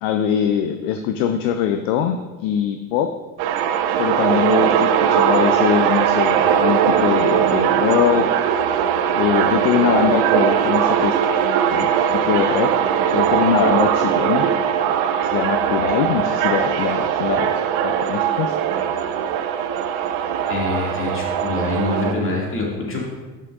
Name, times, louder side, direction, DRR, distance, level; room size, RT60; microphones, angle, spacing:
voice 1, 0.0-3.1 4.0-8.3 9.1-11.2 11.7-12.7 13.1-14.5 15.3-17.6 17.8-18.5, left 9 dB, 55° left, 8 dB, 0.6 m, -22 dB
sound 1, 3.4-22.1, right 8 dB, 60° right, 0.7 m, -20 dB
voice 2, 20.4-23.0, left 2 dB, 30° left, -3 dB, 2.4 m, -25 dB
11.0 x 6.5 x 2.5 m, 1.2 s
figure-of-eight pair, 55°, 43 cm